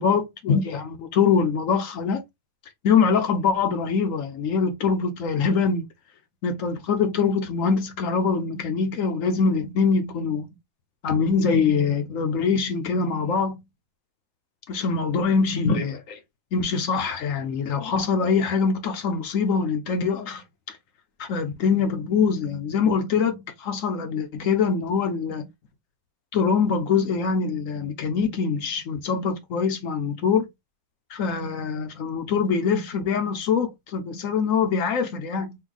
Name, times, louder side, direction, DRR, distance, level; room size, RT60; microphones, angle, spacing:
voice 1, 0.0-2.2 2.8-5.8 6.4-10.5 11.0-13.6 14.7-16.2 16.5-20.4 21.2-25.5 26.3-30.5 31.1-35.6, left 5 dB, 55° left, 0.9 m, -23 dB
4.4 x 2.2 x 3.9 m
omnidirectional pair, 2.1 m